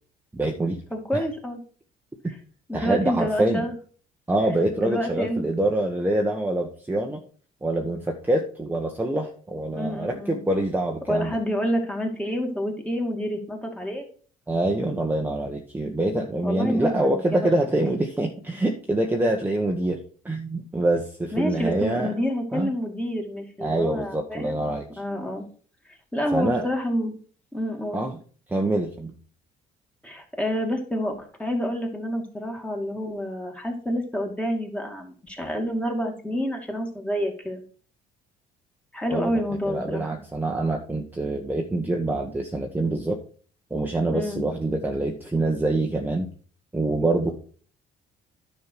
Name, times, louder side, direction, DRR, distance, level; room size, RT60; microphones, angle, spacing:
voice 1, 0.3-0.8 1.1-1.2 2.2-2.3 2.7-3.6 4.3-7.2 7.6-11.4 14.5-20.0 20.2-22.1 22.5-22.7 23.6-24.9 26.3-26.7 27.9-28.2 28.5-29.1 39.1-39.3 39.7-43.2 43.7-46.3 46.7-47.3, right 2 dB, 10° right, 1 dB, 1.3 m, -25 dB
voice 2, 0.9-1.6 2.7-3.7 4.8-5.4 9.7-10.4 11.1-14.1 16.4-17.5 21.3-24.6 25.0-25.5 26.1-27.1 27.5-28.0 30.0-37.6 38.9-40.1 44.1-44.4, equal, 5° left, 2 dB, 2.4 m, -28 dB
10.5 x 5.7 x 4.6 m, 0.43 s
cardioid pair, 110°, 17 cm